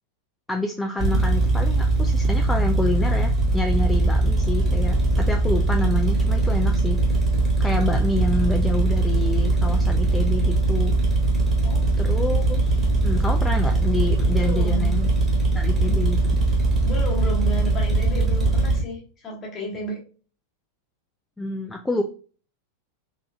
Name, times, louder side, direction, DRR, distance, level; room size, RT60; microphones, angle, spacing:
voice 1, 0.5-7.0 7.6-10.9 12.0-15.1 15.5-16.4 21.4-22.0, left 2 dB, 5° left, 3 dB, 0.4 m, -28 dB
sound 1, 1.0-18.8, right 2 dB, 20° right, 1.4 m, -21 dB
voice 2, 14.3-14.9 16.8-20.0, right 1 dB, 25° left, -1 dB, 1.3 m, -32 dB
3.6 x 3.1 x 2.4 m, 0.39 s
figure-of-eight pair, 90°, 0 cm